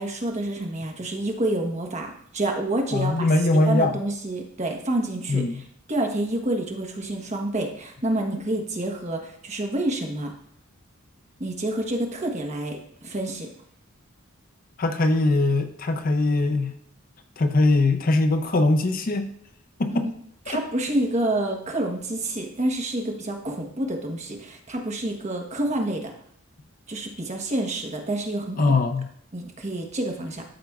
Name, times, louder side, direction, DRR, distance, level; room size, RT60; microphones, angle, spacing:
voice 1, 0.0-3.3 3.5-5.4 5.9-10.3 11.4-13.5 19.9-20.1 20.5-26.1 26.9-28.8 29.3-30.4, right 1 dB, 30° right, 3 dB, 1.1 m, -28 dB
voice 2, 2.9-3.9 5.3-5.6 14.8-16.7 17.4-19.3 19.8-20.1 20.5-20.6 28.6-29.1, left 2 dB, 40° left, 7 dB, 0.5 m, -21 dB
12.5 x 5.1 x 2.4 m, 0.68 s
head